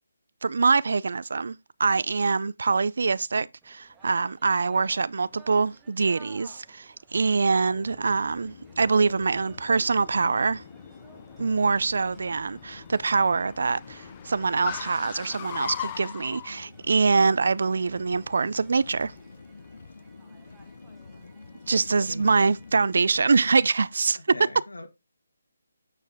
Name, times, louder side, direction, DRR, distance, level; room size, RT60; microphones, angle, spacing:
voice 1, 0.4-10.6 11.4-19.1 21.7-24.2, right 4 dB, 65° right, 0.4 m, -24 dB
sound 1, 3.6-23.4, right 3 dB, 10° right, 1.3 m, -57 dB
Car, 7.6-16.5, left 10 dB, 25° left, 0.8 m, -42 dB
sound 2, 8.1-23.6, left 4 dB, 65° left, 0.8 m, -48 dB
voice 2, 11.4-11.7 22.1-22.2 24.1-24.9, left 2 dB, 85° left, 1.9 m, -41 dB
8.9 x 4.6 x 3.5 m
figure-of-eight pair, 155°, 0 cm